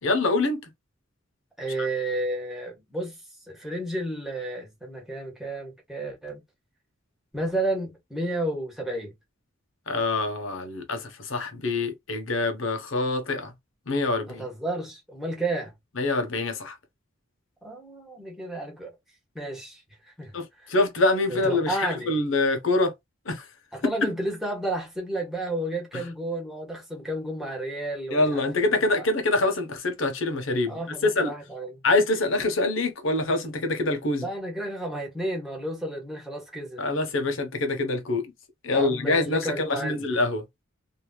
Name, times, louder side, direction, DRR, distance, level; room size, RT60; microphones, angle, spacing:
voice 1, 0.0-0.7 1.8-1.9 9.9-13.5 13.9-14.5 16.0-16.8 20.3-22.9 23.2-23.5 25.9-26.0 28.1-31.3 31.8-34.3 36.8-38.3 38.6-40.4, left 2 dB, 70° left, 0.9 m, -25 dB
voice 2, 1.6-3.2 3.5-6.4 7.3-9.1 14.3-15.7 17.6-18.9 19.3-20.7 21.3-22.1 23.7-29.1 30.7-31.8 34.2-36.8 38.7-40.1, right 1 dB, ahead, 1.3 m, -32 dB
3.1 x 2.7 x 2.3 m
head